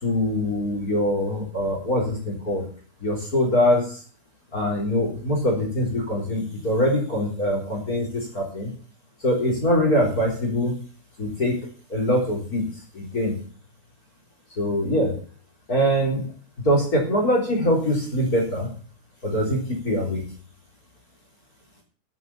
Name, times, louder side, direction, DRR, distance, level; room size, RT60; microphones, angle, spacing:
voice 1, 0.0-2.6 3.0-4.0 4.5-8.7 9.2-10.8 11.2-12.6 12.9-13.4 14.6-15.2 15.7-16.2 16.6-18.7 19.2-20.2, equal, 25° left, -1 dB, 4.3 m, -23 dB
12.0 x 7.8 x 7.2 m, 0.41 s
omnidirectional pair, 3.7 m